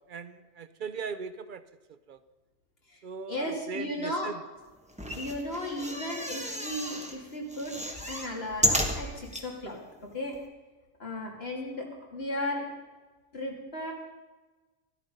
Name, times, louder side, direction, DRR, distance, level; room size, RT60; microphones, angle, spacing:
voice 1, 0.1-1.6 1.9-2.2 3.0-4.4, right 5 dB, 60° right, 11 dB, 0.5 m, -39 dB
voice 2, 3.3-4.3 5.1-7.8 8.1-10.3 11.0-12.6 13.3-13.9, left 1 dB, 45° left, -1 dB, 2.9 m, -35 dB
sound 1, 4.9-7.1 7.5-9.5 10.0-10.1 10.3-10.4, equal, 5° right, 1.4 m, -32 dB
13.0 x 13.0 x 5.4 m, 1.2 s
omnidirectional pair, 1.4 m